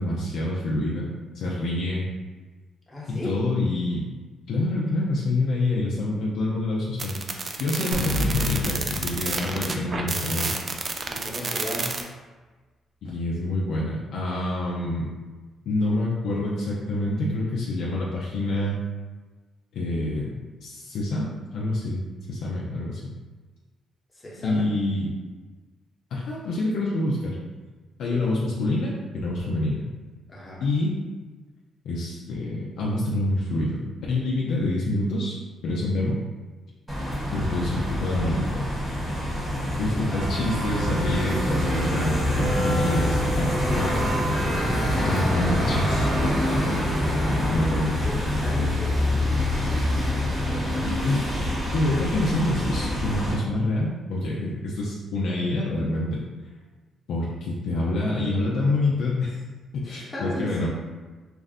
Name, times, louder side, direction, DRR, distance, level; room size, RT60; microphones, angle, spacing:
voice 1, 0.0-2.1 3.1-4.1 4.5-10.5 13.0-15.1 15.7-18.8 19.7-20.3 20.6-21.2 21.5-23.1 24.4-25.1 26.1-27.4 28.0-29.9 30.6-30.9 31.8-36.2 37.3-38.7 39.8-43.9 44.9-46.1 47.5-48.2 50.6-51.3 51.7-56.2 57.1-59.4 59.7-60.7, left 2 dB, 75° left, -5 dB, 0.4 m, -27 dB
voice 2, 2.9-3.4 9.5-9.6 11.1-11.9 24.1-24.7 30.3-30.7 47.0-49.0 50.2-51.4 59.8-60.7, equal, 20° left, -5 dB, 0.9 m, -36 dB
sound 1, 7.0-12.0, right 3 dB, 35° right, 0.3 m, -29 dB
sound 2, 7.9-10.5, equal, 90° right, 0.6 m, -29 dB
sound 3, 36.9-53.3, left 1 dB, 10° right, 0.9 m, -25 dB
2.5 x 2.1 x 3.6 m, 1.3 s
cardioid pair, 90°, 0 cm